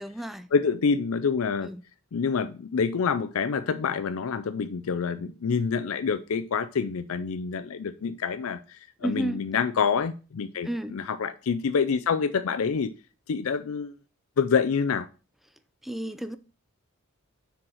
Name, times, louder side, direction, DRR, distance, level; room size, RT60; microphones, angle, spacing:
voice 1, 0.0-0.4 1.6-1.8 9.0-9.4 10.6-11.0 15.8-16.4, right 1 dB, ahead, 0.5 m, -32 dB
voice 2, 0.5-1.7 2.1-12.9 13.3-13.9 14.4-15.1, left 5 dB, 70° left, 0.4 m, -27 dB
6.1 x 4.7 x 6.2 m
head